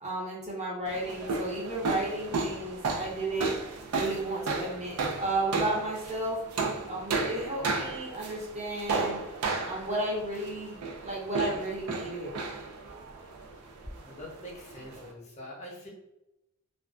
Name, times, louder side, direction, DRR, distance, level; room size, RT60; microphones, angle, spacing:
voice 1, 0.0-3.5 3.9-6.4 6.9-9.2 9.6-12.3, right 1 dB, 30° right, -4 dB, 0.6 m, -33 dB
sound 1, 0.9-15.1, right 3 dB, 90° right, 0.4 m, -34 dB
voice 2, 14.0-15.9, equal, 30° left, -3 dB, 0.6 m, -44 dB
2.4 x 2.2 x 2.3 m, 0.89 s
head